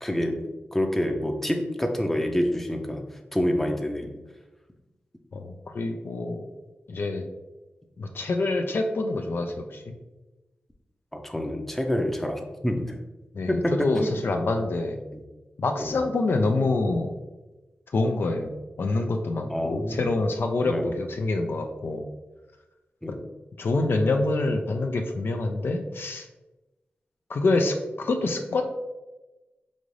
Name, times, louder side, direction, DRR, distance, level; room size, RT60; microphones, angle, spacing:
voice 1, 0.0-0.4 0.7-3.0 3.3-4.1 11.1-12.9 13.5-14.1 15.1-15.2 15.8-16.0 19.5-20.0 20.6-20.9 23.0-23.2, left 1 dB, 5° left, 3 dB, 0.6 m, -27 dB
voice 2, 5.3-6.5 6.9-7.2 8.0-9.9 13.3-15.0 15.6-17.1 17.9-22.1 23.1-23.2 23.6-26.3 27.3-28.6, left 2 dB, 65° left, 4 dB, 0.4 m, -26 dB
5.1 x 2.5 x 3.2 m, 1.1 s
cardioid pair, 60°, 4 cm